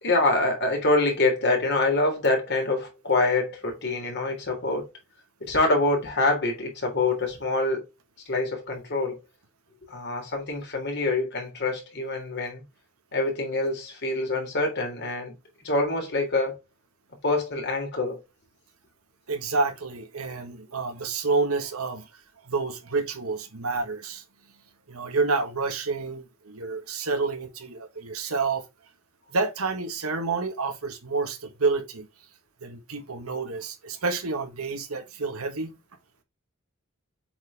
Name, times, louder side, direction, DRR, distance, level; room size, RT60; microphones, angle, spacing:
voice 1, 0.0-4.9 5.4-7.8 8.3-9.2 9.9-12.6 13.1-15.3 15.6-16.6 17.2-18.2, left 2 dB, 55° left, 3.4 m, -25 dB
voice 2, 19.3-22.1 22.4-24.2 24.9-28.6 29.3-32.1 32.6-35.7, right 4 dB, 80° right, 1.7 m, -29 dB
7.7 x 4.6 x 3.6 m
head